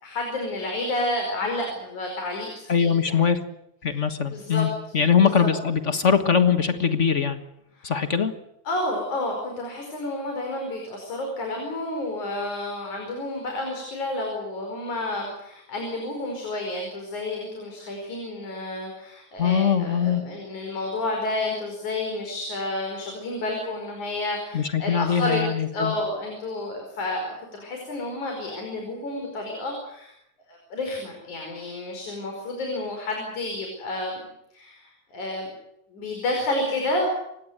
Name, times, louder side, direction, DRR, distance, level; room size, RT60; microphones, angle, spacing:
voice 1, 0.0-3.2 4.3-4.7 5.2-5.5 7.8-7.9 8.7-25.4 25.7-30.1 30.5-34.2 34.5-35.5 35.9-37.1, left 2 dB, 85° left, 2 dB, 6.5 m, -30 dB
voice 2, 2.7-3.4 3.8-4.7 4.9-7.4 7.8-8.3 19.4-20.2 24.5-25.9, left 7 dB, 40° left, 9 dB, 1.1 m, -22 dB
29.0 x 16.5 x 8.1 m, 0.79 s
omnidirectional pair, 3.3 m